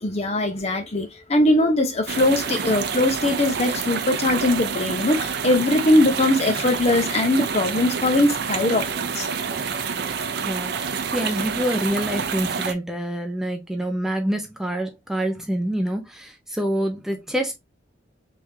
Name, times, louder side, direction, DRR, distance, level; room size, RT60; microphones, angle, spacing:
voice 1, 0.0-9.3, left 1 dB, 35° left, 0.7 m, -21 dB
sound 1, 2.1-12.7, right 6 dB, 60° right, 0.6 m, -28 dB
voice 2, 10.5-17.5, right 1 dB, ahead, 0.6 m, -26 dB
3.6 x 3.3 x 2.7 m
head